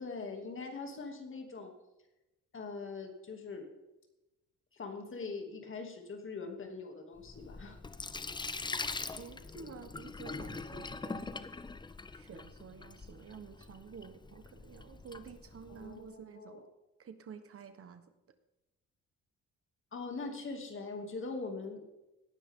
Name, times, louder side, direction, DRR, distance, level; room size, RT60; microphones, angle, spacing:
voice 1, 0.0-1.7 2.5-3.7 4.7-7.8 15.8-16.6 19.9-21.8, left 4 dB, 40° left, 4 dB, 2.6 m, -42 dB
Sink (filling or washing), 7.2-16.0, left 3 dB, 15° left, 0.6 m, -43 dB
voice 2, 9.2-11.3 12.1-16.7 17.0-18.1, right 6 dB, 50° right, 10 dB, 1.2 m, -50 dB
17.5 x 10.0 x 3.7 m, 0.99 s
cardioid pair, 90°, 30 cm